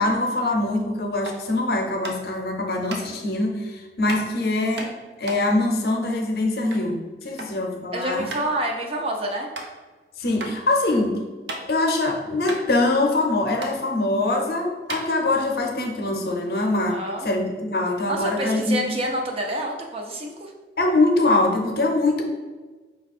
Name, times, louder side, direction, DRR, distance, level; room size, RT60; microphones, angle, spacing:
voice 1, 0.0-4.9 5.2-8.3 10.2-11.2 11.7-19.0 20.8-22.2, left 2 dB, 55° left, 2 dB, 0.6 m, -23 dB
sound 1, 1.2-1.5 2.0-2.4 2.9-3.0 4.1-4.3 4.8-6.9 7.2-7.6 7.9-8.0 8.3-8.5 9.0-9.1 9.5-9.7 10.4-10.5 10.9-11.9 12.2-12.3 12.5-13.3 13.6-13.7 14.4-14.5 14.8-15.6, right 2 dB, 80° right, 0.7 m, -34 dB
voice 2, 7.9-9.5 16.9-17.3 18.1-20.5, right 1 dB, 35° right, 1 dB, 0.5 m, -28 dB
5.1 x 2.3 x 4.2 m, 1.3 s
head